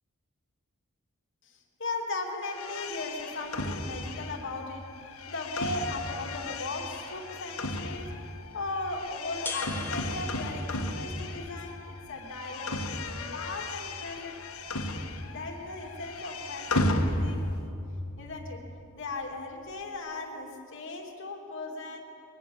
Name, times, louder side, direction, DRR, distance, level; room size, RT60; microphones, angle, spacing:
voice 1, 1.4-4.9 5.3-8.1 8.5-14.4 14.9-17.5 18.2-18.7 18.9-22.0, left 2 dB, 60° left, 2 dB, 2.7 m, -37 dB
sound 1, 2.5-11.8 12.1-15.5 15.8-17.7, left 2 dB, 80° left, 1.5 m, -34 dB
sound 2, 8.5-20.0, left 3 dB, 10° left, 1.3 m, -49 dB
23.0 x 19.0 x 7.2 m, 2.7 s
head